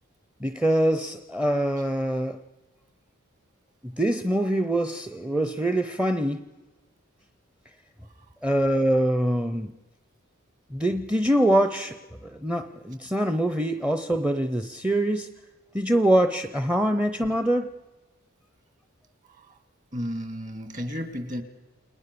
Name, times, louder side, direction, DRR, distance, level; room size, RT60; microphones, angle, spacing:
voice 1, 0.4-2.4 3.8-6.5 8.4-9.7 10.7-15.3 15.7-17.8, right 1 dB, 5° right, 10 dB, 0.7 m, -24 dB
voice 2, 19.3-19.6 19.9-21.4, equal, 35° right, 10 dB, 2.2 m, -33 dB
29.5 x 20.0 x 6.9 m, 1.2 s
head